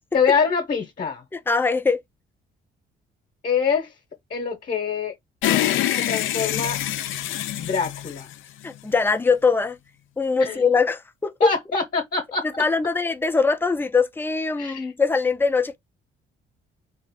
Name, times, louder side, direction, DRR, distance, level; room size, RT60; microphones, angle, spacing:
voice 1, 0.1-1.2 3.4-3.9 4.3-5.1 6.0-6.8 7.6-8.3 10.4-10.6 11.4-12.4 14.6-14.9, left 5 dB, 45° left, 0.9 m, -24 dB
voice 2, 1.3-2.0 8.6-9.8 10.2-11.5 12.4-15.8, left 4 dB, 10° left, 0.4 m, -22 dB
sound 1, 5.4-8.9, left 12 dB, 80° left, 0.4 m, -25 dB
2.9 x 2.4 x 3.5 m
cardioid pair, 90°, 20 cm